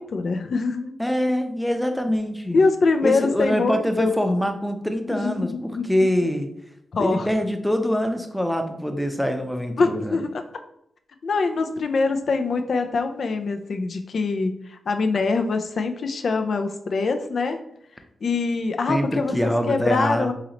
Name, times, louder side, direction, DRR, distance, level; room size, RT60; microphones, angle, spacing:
voice 1, 0.0-0.9 2.5-4.1 5.1-5.9 6.9-7.3 9.8-10.3 11.2-17.6 18.2-19.4 19.7-20.3, left 4 dB, 70° left, 7 dB, 0.4 m, -23 dB
voice 2, 1.0-2.6 3.0-6.5 7.0-10.2 18.9-20.3, equal, 5° left, 6 dB, 0.6 m, -24 dB
3.8 x 3.1 x 2.9 m, 0.75 s
cardioid pair, 55°, 0 cm